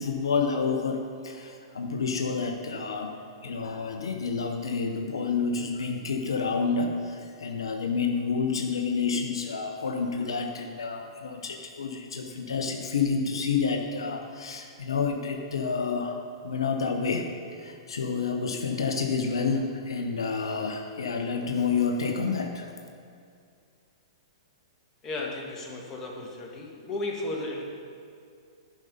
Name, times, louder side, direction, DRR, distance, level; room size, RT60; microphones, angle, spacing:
voice 1, 0.0-3.1 3.4-22.7, left 5 dB, 75° left, 4 dB, 0.7 m, -29 dB
voice 2, 25.0-27.6, left 2 dB, 20° left, -2 dB, 1.6 m, -34 dB
10.5 x 5.3 x 5.5 m, 2.3 s
figure-of-eight pair, 110°, 3 cm